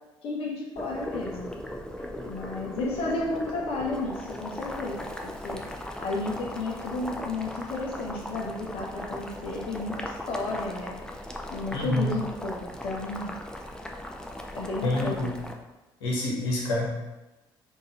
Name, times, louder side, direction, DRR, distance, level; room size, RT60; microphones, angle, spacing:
voice 1, 0.2-1.5 2.2-4.9 5.2-5.6 6.0-11.0 11.5-13.3 14.5-15.3, left 2 dB, 55° left, -3 dB, 0.8 m, -32 dB
Boiling, 0.8-15.5, left 1 dB, 5° left, 0.5 m, -38 dB
voice 2, 11.7-12.1 14.8-15.3 16.0-16.9, left 1 dB, 80° left, -4 dB, 1.1 m, -27 dB
3.9 x 2.6 x 3.9 m, 1.1 s
hypercardioid pair, 55°, 12 cm